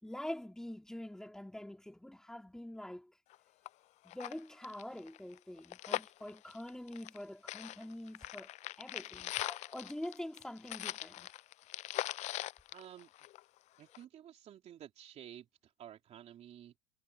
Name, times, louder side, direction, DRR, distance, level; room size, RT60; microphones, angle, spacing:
voice 1, 0.0-3.1 4.0-8.5 8.8-11.3, left 1 dB, 5° left, 3.7 m, -45 dB
sound 1, 3.3-3.4 3.7-3.8 4.1-7.2 7.5-13.6 13.9-14.0, left 16 dB, 35° left, 0.5 m, -41 dB
voice 2, 12.7-13.1 13.8-16.8, right 10 dB, 35° right, 3.3 m, -52 dB
hypercardioid pair, 110°, 19 cm